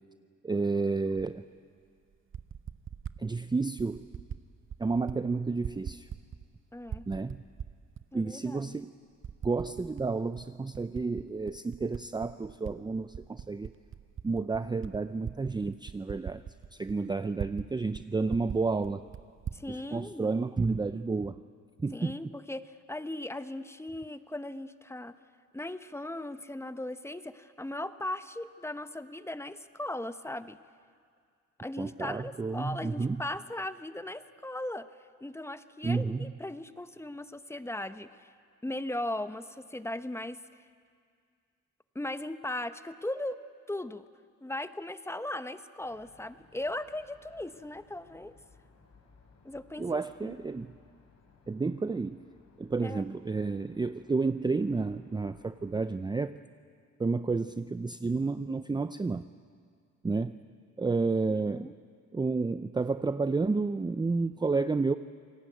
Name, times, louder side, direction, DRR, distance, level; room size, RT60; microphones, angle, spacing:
voice 1, 0.4-1.4 3.2-4.1 4.8-6.1 7.1-7.4 8.1-8.9 9.4-13.7 14.2-16.4 16.7-19.0 19.7-21.4 21.8-22.3 31.8-33.2 35.8-36.3 49.8-50.7 51.5-52.3 52.6-56.4 57.0-59.3 60.0-60.4 60.8-61.7 62.1-64.9, right 4 dB, 15° right, 11 dB, 0.5 m, -31 dB
Typing, 1.2-1.3 2.1-3.2 3.8-4.4 4.7-5.2 5.5-6.5 6.8-8.0 8.6-8.7 9.2-10.1 10.4-12.7 13.1-17.7 17.9-18.0 18.3-19.6, right 8 dB, 40° right, 0.9 m, -41 dB
voice 2, 6.7-7.1 8.1-8.8 19.5-20.3 21.9-25.1 25.5-30.6 31.6-34.9 35.2-38.3 38.6-40.4 41.9-43.4 43.7-44.0 44.4-48.3 49.4-50.3 52.8-53.0 61.5-61.7, left 1 dB, 10° left, 12 dB, 1.0 m, -38 dB
sound 1, 45.8-55.9, left 4 dB, 60° left, 5.4 m, -61 dB
28.0 x 18.5 x 9.3 m, 2.2 s
cardioid pair, 90°, 30 cm